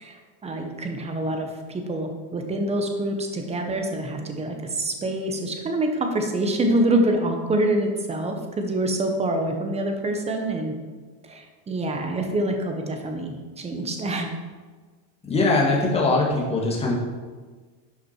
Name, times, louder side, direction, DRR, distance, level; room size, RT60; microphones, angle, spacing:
voice 1, 0.0-10.7 11.2-14.3, right 1 dB, 15° right, 4 dB, 0.9 m, -26 dB
voice 2, 15.2-16.9, left 2 dB, 10° left, -3 dB, 1.7 m, -21 dB
11.0 x 5.8 x 4.4 m, 1.4 s
cardioid pair, 160°, 49 cm